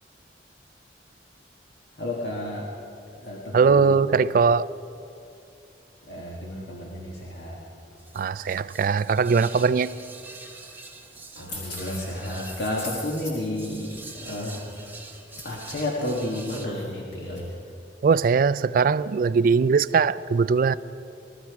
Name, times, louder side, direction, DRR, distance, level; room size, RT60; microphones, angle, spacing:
voice 1, 2.0-2.7 3.1-4.0 6.1-7.6 11.4-14.8 15.4-17.6, left 1 dB, 75° left, 1.6 m, -31 dB
voice 2, 3.5-4.7 8.1-9.9 18.0-20.8, right 5 dB, 50° right, 0.3 m, -20 dB
sound 1, 8.0-16.7, right 3 dB, 10° right, 1.0 m, -45 dB
20.0 x 13.5 x 4.7 m
head